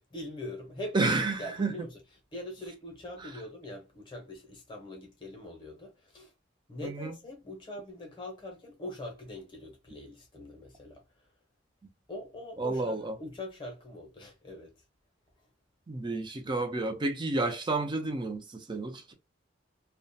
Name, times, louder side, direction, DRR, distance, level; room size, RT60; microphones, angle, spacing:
voice 1, 0.0-2.0 2.3-6.3 6.7-11.0 12.1-14.7, left 1 dB, 25° left, 0.7 m, -43 dB
voice 2, 0.9-1.7 6.8-7.1 12.6-13.1 15.9-19.1, right 3 dB, 25° right, 0.5 m, -30 dB
2.3 x 2.1 x 2.6 m
head